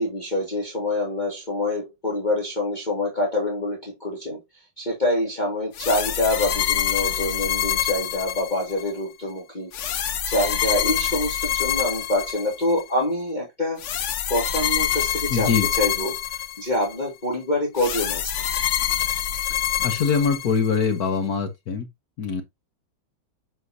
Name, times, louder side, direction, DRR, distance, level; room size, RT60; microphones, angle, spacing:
voice 1, 0.0-4.4 4.8-9.7 10.2-13.8 14.3-16.2 16.6-18.4, left 1 dB, 25° left, 2.3 m, -26 dB
sound 1, 5.7-8.9 9.7-12.8 13.8-16.9 17.8-20.9, left 10 dB, 80° left, 0.6 m, -26 dB
voice 2, 15.3-15.7 19.8-21.9 22.2-22.4, left 6 dB, 55° left, 1.4 m, -23 dB
7.7 x 5.7 x 2.7 m
omnidirectional pair, 2.1 m